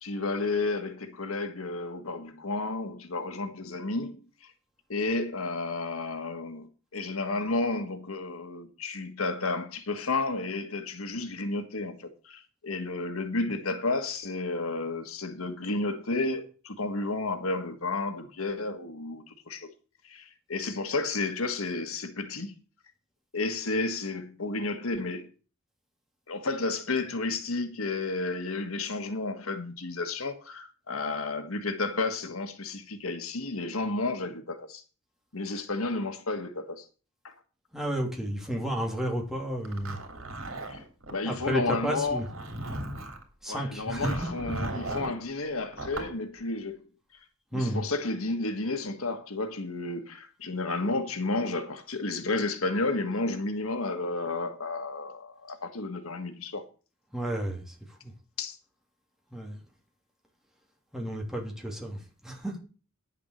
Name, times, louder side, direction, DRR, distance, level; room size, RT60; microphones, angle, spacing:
voice 1, 0.0-4.5 4.9-19.7 20.0-22.6 23.3-25.3 26.3-34.8 35.3-36.9 37.2-37.3 40.7-40.8 41.1-42.2 43.5-46.9 47.5-56.6 58.4-58.6, left 3 dB, 85° left, 1.5 m, -32 dB
voice 2, 37.7-40.0 41.2-42.3 43.4-44.3 47.5-47.8 57.1-57.7 58.0-58.1 59.3-59.6 60.9-62.6, right 1 dB, ahead, 3.0 m, -32 dB
Zipper (clothing), 39.7-41.2 42.0-43.2 44.0-45.2 45.7-46.1, right 2 dB, 70° right, 3.1 m, -36 dB
10.0 x 7.4 x 6.4 m
head